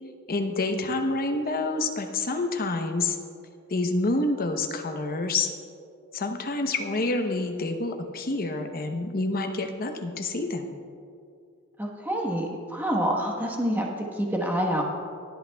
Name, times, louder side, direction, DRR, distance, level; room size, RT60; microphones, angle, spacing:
voice 1, 0.3-3.2 3.7-5.5 6.1-10.7, left 2 dB, 40° left, 5 dB, 0.8 m, -28 dB
voice 2, 11.8-14.8, equal, 10° right, -1 dB, 1.2 m, -27 dB
25.0 x 8.5 x 2.3 m, 2.4 s
head